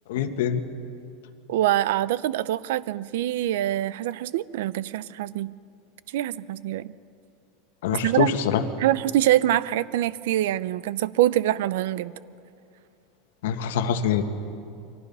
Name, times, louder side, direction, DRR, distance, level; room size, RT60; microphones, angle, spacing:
voice 1, 0.1-0.6 7.8-8.6 13.4-14.2, left 8 dB, 85° left, 7 dB, 1.7 m, -24 dB
voice 2, 1.5-5.5 6.1-6.9 8.0-8.3 8.8-12.1, right 13 dB, 70° right, 18 dB, 0.6 m, -24 dB
29.5 x 24.0 x 5.6 m, 2.5 s
supercardioid pair, 170°, 0 cm